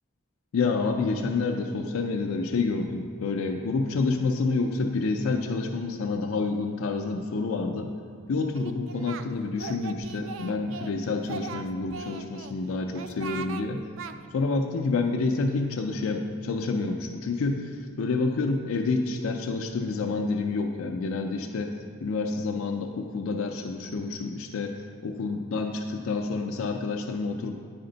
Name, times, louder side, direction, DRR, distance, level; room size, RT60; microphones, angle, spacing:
voice 1, 0.5-7.9 8.3-13.8 14.3-27.6, left 3 dB, 85° left, 3 dB, 0.4 m, -28 dB
Singing, 8.5-9.3 9.6-10.9 11.2-12.5 12.9-13.6 14.0-14.1, right 5 dB, 70° right, 0.3 m, -39 dB
9.5 x 4.3 x 3.9 m, 2.1 s
head